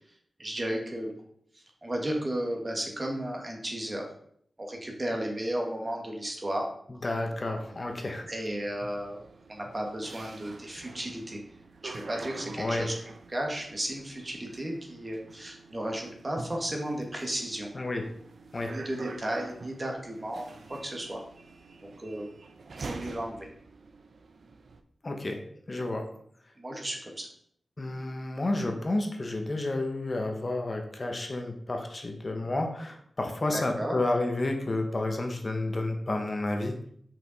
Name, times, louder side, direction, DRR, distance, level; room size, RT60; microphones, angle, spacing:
voice 1, 0.4-1.1 1.5-4.0 4.6-6.7 8.3-9.2 9.5-11.4 11.8-12.9 13.3-17.7 18.6-21.2 21.8-22.3 22.7-23.5 26.6-27.3 33.5-34.0, right 1 dB, 30° right, 1 dB, 1.4 m, -34 dB
voice 2, 7.0-8.3 12.6-12.9 17.7-18.0 18.5-18.8 25.0-25.4 25.7-26.0 27.8-36.8, left 2 dB, 40° left, 3 dB, 1.0 m, -30 dB
sound 1, 7.3-24.8, right 3 dB, 70° right, 0.6 m, -46 dB
5.9 x 4.9 x 4.0 m, 0.65 s
wide cardioid pair, 95°, 0 cm